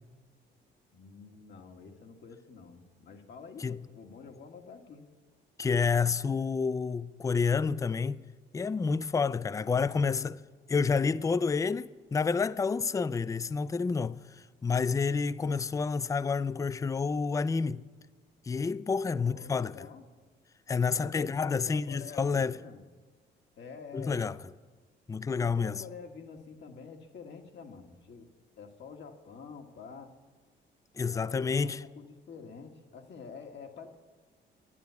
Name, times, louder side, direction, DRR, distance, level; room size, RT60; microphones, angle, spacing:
voice 1, 0.9-5.1 9.6-10.3 19.1-20.0 20.9-22.8 23.6-24.3 25.3-28.3 28.6-30.1 31.1-33.9, left 5 dB, 65° left, 1.7 m, -48 dB
voice 2, 5.6-8.3 8.5-10.4 10.7-17.8 18.5-19.9 20.7-22.6 23.9-24.4 25.1-25.8 31.0-31.8, left 5 dB, 15° left, 0.4 m, -29 dB
11.0 x 10.5 x 8.2 m
cardioid pair, 90°, 20 cm